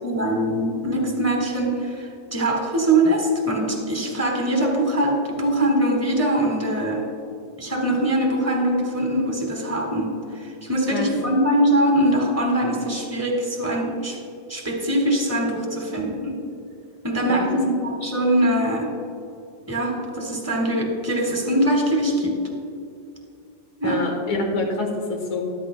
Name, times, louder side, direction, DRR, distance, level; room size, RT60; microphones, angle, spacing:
voice 1, 0.0-7.1 7.6-14.2 14.5-16.3 17.0-18.9 19.7-22.3 23.8-24.0, right 1 dB, 10° right, 0 dB, 1.4 m, -22 dB
voice 2, 23.8-25.4, left 3 dB, 90° left, 2 dB, 2.2 m, -26 dB
13.0 x 11.0 x 2.2 m, 2.5 s
omnidirectional pair, 2.1 m